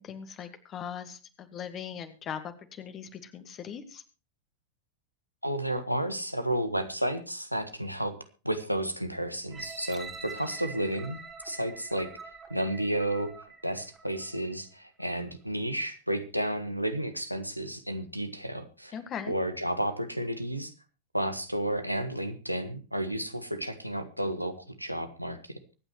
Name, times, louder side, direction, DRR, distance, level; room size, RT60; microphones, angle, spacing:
voice 1, 0.0-4.0 18.9-19.3, left 8 dB, 30° left, 9 dB, 1.8 m, -40 dB
voice 2, 5.4-8.1 8.4-11.2 11.4-12.1 12.5-13.3 13.6-18.9 19.3-20.7 21.1-25.6, right 1 dB, 90° right, 8 dB, 1.5 m, -32 dB
sound 1, 9.5-14.5 15.0-15.1, right 5 dB, 20° right, 2.7 m, -45 dB
24.0 x 9.0 x 3.1 m, 0.34 s
figure-of-eight pair, 90°, 0 cm